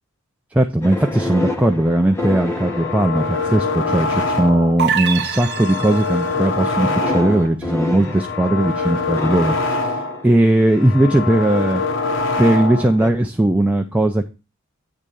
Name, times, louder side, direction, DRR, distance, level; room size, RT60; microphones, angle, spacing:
voice 1, 0.5-11.8 12.4-14.3, right 1 dB, 5° right, 3 dB, 0.5 m, -18 dB
sound 1, 0.8-4.2 4.9-5.4 6.8-10.9 13.0-13.1, left 2 dB, 15° left, 1.0 m, -29 dB
sound 2, 2.4-4.8 5.2-7.5 7.9-10.3 10.6-13.0, left 3 dB, 65° left, 0.8 m, -24 dB
sound 3, 4.8-6.4, right 7 dB, 55° right, 0.9 m, -24 dB
8.8 x 3.7 x 6.8 m, 0.29 s
head